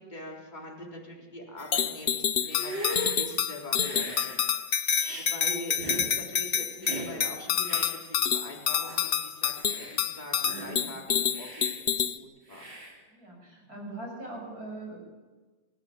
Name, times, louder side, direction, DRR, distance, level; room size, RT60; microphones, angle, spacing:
voice 1, 0.0-4.4 4.7-9.0 9.2-12.7, left 1 dB, 20° left, -2 dB, 4.1 m, -43 dB
sound 1, 1.7-12.2, left 8 dB, 85° left, 0.5 m, -28 dB
Hiss, 2.4-3.2 3.8-4.4 5.0-5.3 5.8-6.1 6.8-7.1 7.6-7.9 8.5-8.6 8.8-9.1 9.6-10.0 10.4-10.8 11.3-11.7 12.5-12.9, right 1 dB, 70° right, 5.3 m, -38 dB
voice 2, 13.1-15.0, right 2 dB, 50° right, 0 dB, 7.1 m, -41 dB
27.0 x 14.5 x 8.5 m, 1.3 s
omnidirectional pair, 2.1 m